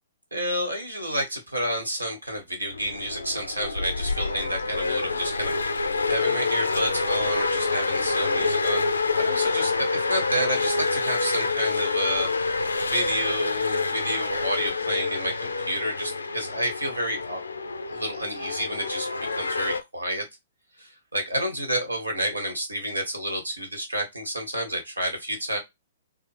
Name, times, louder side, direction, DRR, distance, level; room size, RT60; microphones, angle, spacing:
voice 1, 0.3-17.4 17.9-20.2 20.8-25.6, right 1 dB, 85° right, 1.5 m, -30 dB
sound 1, 2.7-19.8, left 4 dB, 80° left, 0.5 m, -27 dB
3.9 x 2.3 x 3.3 m
figure-of-eight pair, 115°, 0 cm